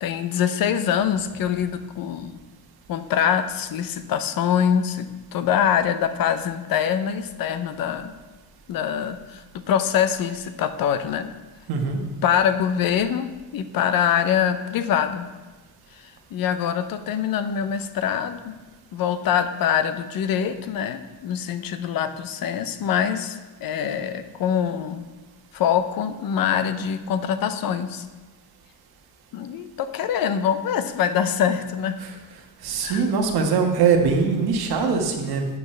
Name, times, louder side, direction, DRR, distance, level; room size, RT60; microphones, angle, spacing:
voice 1, 0.0-2.4 2.9-8.1 8.7-11.3 12.2-15.3 16.3-18.6 18.9-25.0 25.5-28.1 29.3-32.0 32.8-33.1, left 8 dB, 55° left, 11 dB, 0.7 m, -24 dB
voice 2, 11.7-12.0 32.0-32.2 32.6-35.5, right 5 dB, 65° right, 2 dB, 1.5 m, -22 dB
11.5 x 8.5 x 3.3 m, 1.3 s
cardioid pair, 170°, 41 cm